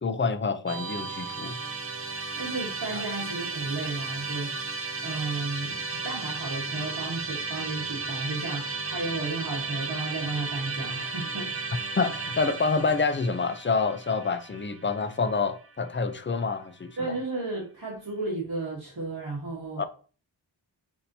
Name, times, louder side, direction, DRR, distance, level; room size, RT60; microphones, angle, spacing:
voice 1, 0.0-1.6 2.9-3.0 12.0-17.2 19.8-19.9, left 4 dB, 25° left, 0.4 m, -27 dB
Musical instrument, 0.7-15.8, right 4 dB, 30° right, 0.6 m, -34 dB
voice 2, 2.4-4.7 5.0-11.7 17.0-19.8, right 3 dB, 55° right, 1.4 m, -33 dB
6.6 x 2.8 x 2.7 m
wide cardioid pair, 70°, 46 cm